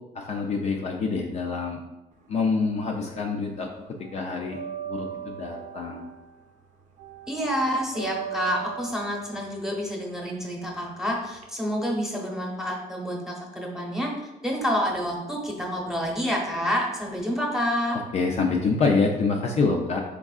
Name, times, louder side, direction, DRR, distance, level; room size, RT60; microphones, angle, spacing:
voice 1, 0.1-1.8 2.3-3.7 4.1-4.6 4.9-6.1 18.1-20.0, left 4 dB, 40° left, 0 dB, 0.5 m, -26 dB
sound 1, 2.2-3.3 3.5-11.4, right 9 dB, 45° right, 0.6 m, -39 dB
voice 2, 7.3-14.1 14.4-18.0, equal, 5° right, -1 dB, 1.0 m, -28 dB
4.6 x 3.6 x 2.4 m, 0.99 s
cardioid pair, 110°, 17 cm